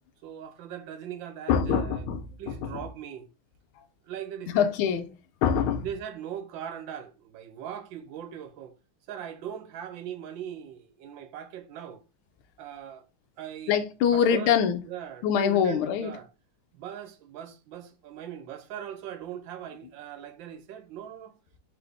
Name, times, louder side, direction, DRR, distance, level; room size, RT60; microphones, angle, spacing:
voice 1, 0.2-2.1 2.4-3.3 4.0-4.7 5.8-8.8 9.1-12.0 12.6-13.0 13.4-13.8 14.1-14.5 14.9-16.3 16.7-21.3, right 9 dB, 70° right, 1.3 m, -40 dB
voice 2, 1.5-2.9 3.8-3.9 4.5-5.1 5.4-5.8 13.7-14.8 15.2-16.1, left 8 dB, 90° left, 1.4 m, -24 dB
3.9 x 3.5 x 3.4 m
omnidirectional pair, 2.3 m